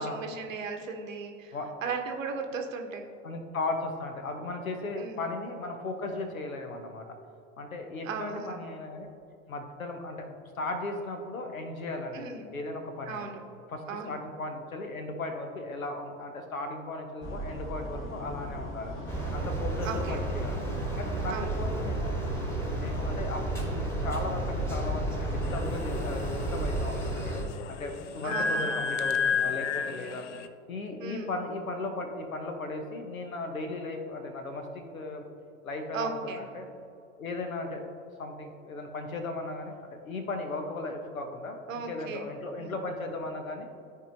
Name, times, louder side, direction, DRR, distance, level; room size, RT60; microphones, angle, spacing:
voice 1, 0.0-1.6 1.8-3.1 5.0-5.2 8.0-8.6 12.1-12.5 13.1-13.4 13.9-14.2 19.8-20.2 21.3-21.6 28.2-28.8 31.0-31.3 35.9-36.4 41.7-42.3 42.6-42.7, right 4 dB, 70° right, 4 dB, 1.0 m, -36 dB
voice 2, 3.2-7.0 7.6-9.1 9.5-13.3 13.7-18.9 19.3-20.6 21.0-22.2 22.8-27.4 27.7-30.2 30.7-35.2 35.6-36.7 37.2-37.8 38.2-43.7, left 2 dB, 80° left, 5 dB, 1.0 m, -36 dB
sound 1, 17.2-26.8, right 1 dB, 30° left, 1.6 m, -38 dB
sound 2, 19.1-27.4, right 1 dB, 5° left, 1.4 m, -32 dB
sound 3, 25.4-30.5, left 5 dB, 60° left, 0.6 m, -32 dB
13.5 x 4.7 x 2.7 m, 2.6 s
figure-of-eight pair, 75°, 41 cm